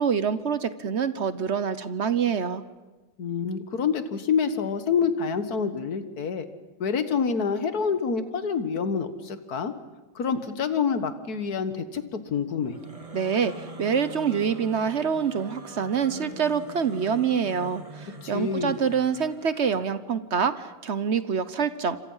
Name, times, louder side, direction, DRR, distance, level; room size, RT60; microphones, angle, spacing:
voice 1, 0.0-2.6 13.1-22.0, right 6 dB, 50° right, 13 dB, 1.0 m, -26 dB
voice 2, 3.2-6.5 6.8-9.7 10.2-12.8 18.2-18.8, left 6 dB, 60° left, 10 dB, 1.9 m, -27 dB
sound 1, 12.6-20.0, right 2 dB, 20° right, 1.8 m, -44 dB
28.0 x 26.0 x 5.6 m, 1.2 s
omnidirectional pair, 1.9 m